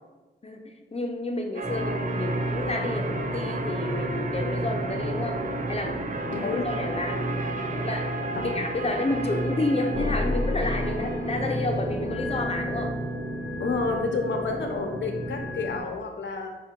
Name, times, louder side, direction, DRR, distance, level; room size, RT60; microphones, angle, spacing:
voice 1, 0.4-5.4 5.7-6.0 6.4-7.2 7.8-8.2 8.4-13.0, left 2 dB, 35° left, 3 dB, 0.5 m, -30 dB
sound 1, 1.5-11.8, right 3 dB, 45° right, 0.5 m, -35 dB
sound 2, 1.6-15.8, equal, 25° right, 0.9 m, -31 dB
voice 2, 6.3-6.6 8.3-8.5 13.6-16.5, left 3 dB, 85° left, 3 dB, 0.7 m, -29 dB
5.7 x 2.1 x 4.4 m, 1.3 s
wide cardioid pair, 100°, 19 cm